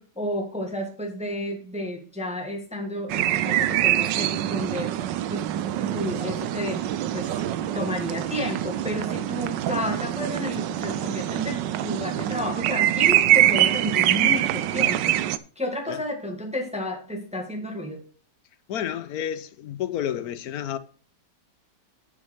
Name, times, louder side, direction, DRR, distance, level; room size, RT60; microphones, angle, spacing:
voice 1, 0.0-5.0 5.3-5.5 5.9-6.8 7.1-7.3 7.7-15.2 15.6-18.0, left 1 dB, 5° right, 1.4 m, -31 dB
sound 1, 3.1-15.4, right 12 dB, 85° right, 1.3 m, -24 dB
voice 2, 18.7-20.8, left 10 dB, 65° left, 1.2 m, -30 dB
7.4 x 6.2 x 6.0 m
omnidirectional pair, 1.9 m